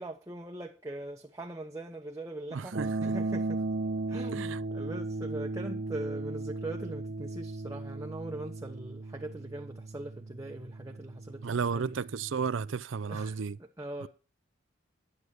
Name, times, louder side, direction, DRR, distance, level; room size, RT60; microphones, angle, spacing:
voice 1, 0.0-3.6 4.1-12.0 13.1-14.1, right 1 dB, 15° right, 0.9 m, -41 dB
voice 2, 2.5-3.2 4.3-4.6 11.4-13.6 14.0-14.1, right 5 dB, 75° right, 0.5 m, -33 dB
sound 1, 2.7-12.8, right 2 dB, 55° right, 0.8 m, -36 dB
11.0 x 10.0 x 4.8 m
head